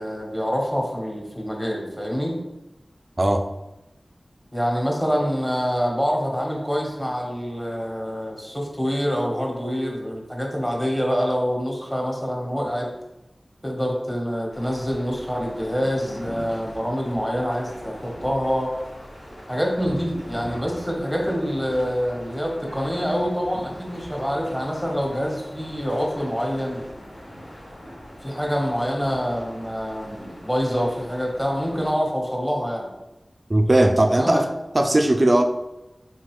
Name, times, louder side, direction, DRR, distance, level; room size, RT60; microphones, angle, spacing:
voice 1, 0.0-2.3 4.5-12.9 13.6-18.7 19.5-26.8 28.2-32.9 34.1-34.4, equal, 10° left, -1 dB, 1.3 m, -26 dB
sound 1, 14.5-31.9, equal, 85° left, 1.5 m, -41 dB
voice 2, 33.5-34.5 34.7-35.4, right 1 dB, 45° right, 5 dB, 0.4 m, -18 dB
4.4 x 3.8 x 3.2 m, 0.96 s
wide cardioid pair, 45°, 0 cm